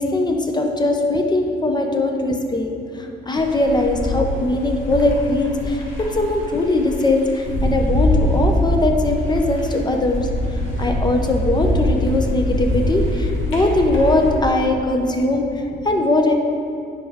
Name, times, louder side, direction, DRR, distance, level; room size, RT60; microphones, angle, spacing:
voice 1, 0.0-16.3, left 2 dB, 20° left, 3 dB, 0.9 m, -20 dB
sound 1, 3.3-14.4, left 1 dB, 75° left, 1.9 m, -23 dB
10.0 x 4.9 x 3.7 m, 2.5 s
cardioid pair, 90°, 20 cm